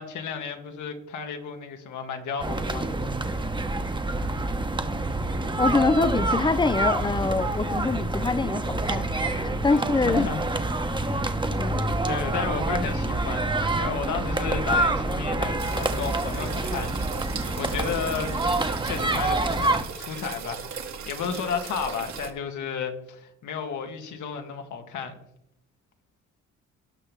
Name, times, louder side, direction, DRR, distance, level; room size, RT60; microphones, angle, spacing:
voice 1, 0.0-2.9 9.7-10.4 10.9-11.3 12.1-18.4 18.8-20.7 21.1-25.2, left 6 dB, 80° left, 1.9 m, -33 dB
sound 1, 2.4-19.8, right 2 dB, 15° right, 1.1 m, -27 dB
voice 2, 5.6-10.3 11.6-11.9, left 3 dB, 15° left, 0.5 m, -25 dB
sound 2, 15.6-22.3, right 6 dB, 65° right, 1.8 m, -37 dB
18.0 x 6.1 x 3.6 m
cardioid pair, 90°, 30 cm